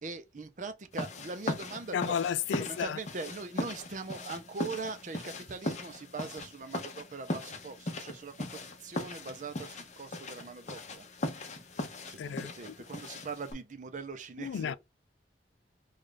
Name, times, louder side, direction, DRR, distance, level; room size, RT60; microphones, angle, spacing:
voice 1, 0.0-2.0 2.6-8.5 8.8-11.1 12.1-14.8, right 4 dB, 45° right, 0.5 m, -41 dB
sound 1, 0.9-13.5, left 2 dB, 40° left, 0.7 m, -39 dB
voice 2, 1.9-3.0 12.2-12.7 14.4-14.8, left 8 dB, 90° left, 0.3 m, -33 dB
3.2 x 2.4 x 3.8 m
head